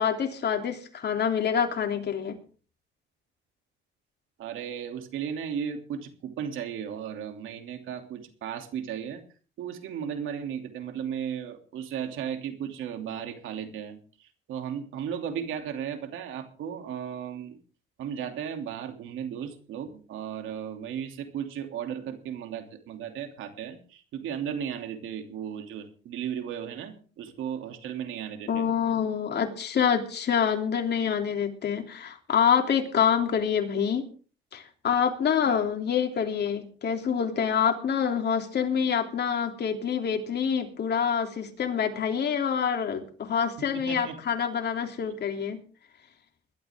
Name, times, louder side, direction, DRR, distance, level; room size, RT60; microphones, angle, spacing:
voice 1, 0.0-2.4 28.5-34.1 34.5-45.6, left 7 dB, 55° left, 4 dB, 3.2 m, -26 dB
voice 2, 4.4-9.2 9.6-17.6 18.0-28.6 35.5-35.6 43.7-44.2 45.0-45.1, right 8 dB, 85° right, 6 dB, 2.9 m, -35 dB
21.0 x 12.5 x 3.7 m, 0.39 s
cardioid pair, 90°, 20 cm